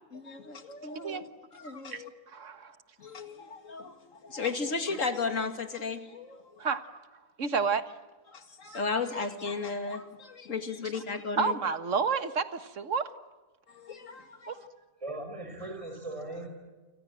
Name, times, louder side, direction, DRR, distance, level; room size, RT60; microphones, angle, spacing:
voice 1, 0.1-2.1 3.0-6.6 8.3-11.5 13.7-14.7, left 4 dB, 70° left, 8 dB, 2.5 m, -35 dB
voice 2, 2.3-2.8 6.6-7.0 7.4-7.9 8.7-8.8 11.4-13.1 14.5-14.6, right 5 dB, 65° right, 11 dB, 1.7 m, -30 dB
voice 3, 15.0-16.5, right 2 dB, 25° right, 5 dB, 5.7 m, -38 dB
29.5 x 25.0 x 7.6 m, 1.3 s
omnidirectional pair, 1.4 m